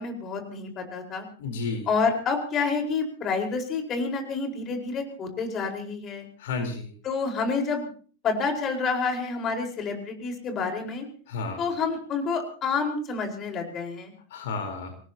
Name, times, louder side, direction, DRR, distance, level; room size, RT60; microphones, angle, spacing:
voice 1, 0.0-1.2 1.9-6.3 7.0-7.9 8.2-11.0 11.6-14.1, left 4 dB, 30° left, 4 dB, 4.6 m, -28 dB
voice 2, 1.4-1.9 6.4-6.9 11.3-11.6 14.3-14.9, left 4 dB, 55° left, 5 dB, 4.0 m, -31 dB
26.5 x 18.5 x 2.9 m, 0.42 s
figure-of-eight pair, 90°, 0 cm